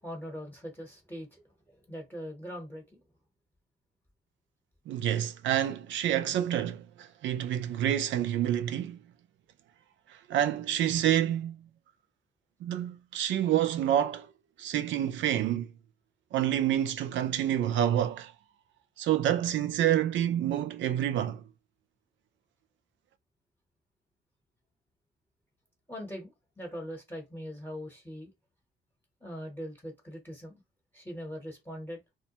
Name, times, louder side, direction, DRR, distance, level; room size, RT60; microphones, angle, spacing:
voice 1, 0.0-3.0 25.9-28.3 29.2-30.6 30.9-32.0, equal, 10° left, 0.9 m, -41 dB
voice 2, 4.9-9.0 10.1-11.7 12.6-14.3 14.6-15.7 16.3-18.3 19.0-21.4, right 11 dB, 70° right, 0.4 m, -28 dB
2.2 x 2.1 x 2.8 m
cardioid pair, 90°, 20 cm